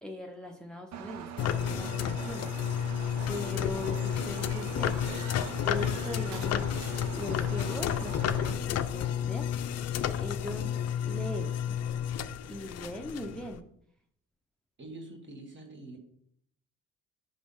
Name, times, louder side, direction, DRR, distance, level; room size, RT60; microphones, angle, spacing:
voice 1, 0.0-2.8 3.3-5.2 5.6-9.4 10.2-11.8 12.5-13.6, left 1 dB, ahead, 3 dB, 0.6 m, -40 dB
Engine, 0.9-8.5, right 7 dB, 65° right, 0.6 m, -42 dB
sound 1, 1.4-13.6, left 9 dB, 60° left, 0.5 m, -31 dB
sound 2, 3.3-3.6 4.0-8.0, right 6 dB, 85° right, 0.9 m, -51 dB
voice 2, 14.8-16.0, right 2 dB, 40° right, 3 dB, 1.5 m, -45 dB
5.2 x 3.3 x 5.4 m, 0.68 s
cardioid pair, 90°, 30 cm